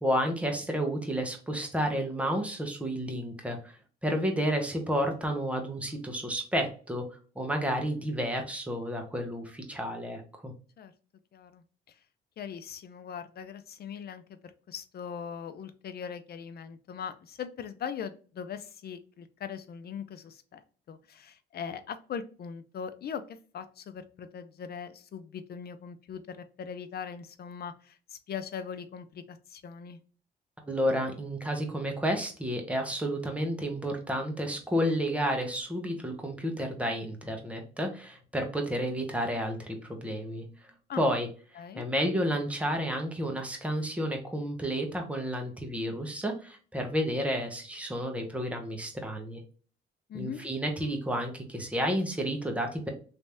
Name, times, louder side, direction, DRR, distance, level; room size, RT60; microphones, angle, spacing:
voice 1, 0.0-7.1 7.4-10.5 30.7-40.5 41.0-41.3 41.5-49.4 50.1-52.9, equal, 5° right, 3 dB, 1.0 m, -31 dB
voice 2, 11.3-11.6 12.4-20.6 20.9-30.0 40.9-41.0 41.6-41.9 50.1-50.4, left 7 dB, 50° left, 11 dB, 0.5 m, -40 dB
3.2 x 2.8 x 3.4 m, 0.39 s
cardioid pair, 90°, 20 cm